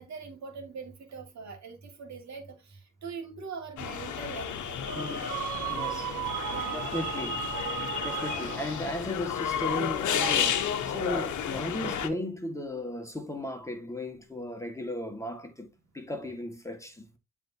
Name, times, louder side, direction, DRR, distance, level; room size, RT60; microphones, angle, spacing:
voice 1, 0.0-4.8 6.4-7.0, right 5 dB, 60° right, 2.2 m, -42 dB
sound 1, 3.8-12.1, left 8 dB, 70° left, 1.1 m, -32 dB
sound 2, 4.8-9.0, right 8 dB, 85° right, 1.3 m, -35 dB
voice 2, 4.9-5.4 5.7-6.1 6.7-7.5 8.0-15.7 15.9-17.2, left 1 dB, 10° left, 1.7 m, -36 dB
10.0 x 3.6 x 2.7 m
cardioid pair, 80°, 31 cm